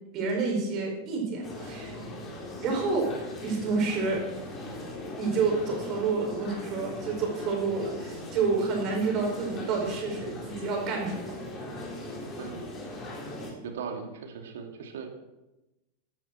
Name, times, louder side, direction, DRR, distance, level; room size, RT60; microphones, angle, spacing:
voice 1, 0.1-2.0 2.6-3.1 3.4-4.2 5.2-11.3, right 4 dB, 35° right, 1 dB, 4.5 m, -29 dB
sound 1, 1.4-13.5, left 1 dB, 25° left, 3.9 m, -39 dB
voice 2, 13.6-15.1, right 6 dB, 60° right, 4 dB, 2.4 m, -38 dB
15.5 x 12.5 x 4.4 m, 1.0 s
figure-of-eight pair, 90°, 0 cm